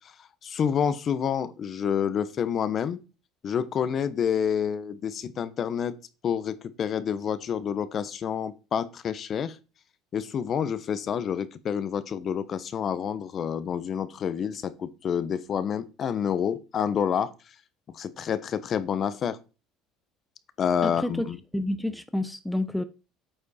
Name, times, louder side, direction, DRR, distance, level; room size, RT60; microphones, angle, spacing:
voice 1, 0.4-3.0 3.4-5.9 6.2-9.6 10.1-17.3 17.9-19.4 20.6-21.4, left 8 dB, 40° left, 0.8 m, -28 dB
voice 2, 20.8-22.8, left 1 dB, 5° left, 0.5 m, -29 dB
8.7 x 4.9 x 4.2 m
supercardioid pair, 110°, 0 cm